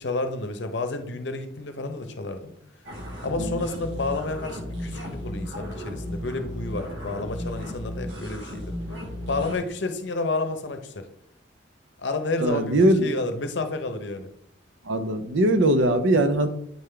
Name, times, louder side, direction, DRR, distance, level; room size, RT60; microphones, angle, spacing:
voice 1, 0.0-2.5 3.2-8.7 9.3-11.1 12.0-14.3, left 3 dB, 65° left, 8 dB, 0.7 m, -30 dB
sound 1, 2.8-9.6, equal, 65° right, 1.4 m, -34 dB
voice 2, 12.4-13.1 14.9-16.5, right 1 dB, 80° right, 9 dB, 0.7 m, -20 dB
8.8 x 3.7 x 3.3 m, 0.72 s
head